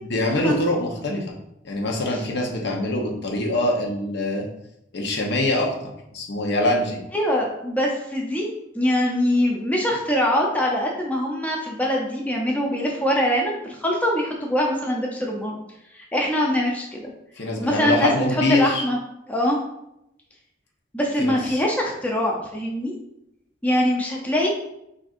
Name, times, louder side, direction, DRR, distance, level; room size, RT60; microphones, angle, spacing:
voice 1, 0.1-1.2 1.6-4.5 4.9-7.0 17.4-18.8 21.2-21.4, left 1 dB, 60° left, 0 dB, 0.8 m, -24 dB
voice 2, 7.1-8.5 8.7-15.6 15.9-17.1 17.6-18.1 18.5-19.0 19.3-19.6 20.9-22.9 23.6-24.5, equal, 10° left, -1 dB, 0.5 m, -23 dB
6.2 x 2.5 x 2.4 m, 0.82 s
head